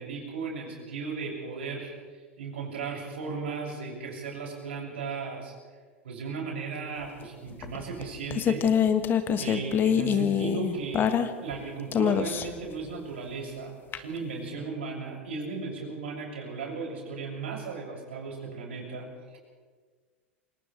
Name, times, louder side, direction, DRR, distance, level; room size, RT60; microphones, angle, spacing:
voice 1, 0.0-1.9 2.4-5.5 6.0-8.7 9.4-11.1 11.4-19.1, right 4 dB, 70° right, -1 dB, 7.2 m, -36 dB
sound 1, 7.6-11.6 11.9-12.7 13.9-14.0, left 8 dB, 30° left, 1.5 m, -25 dB
29.0 x 26.0 x 3.4 m, 1.5 s
figure-of-eight pair, 80°, 7 cm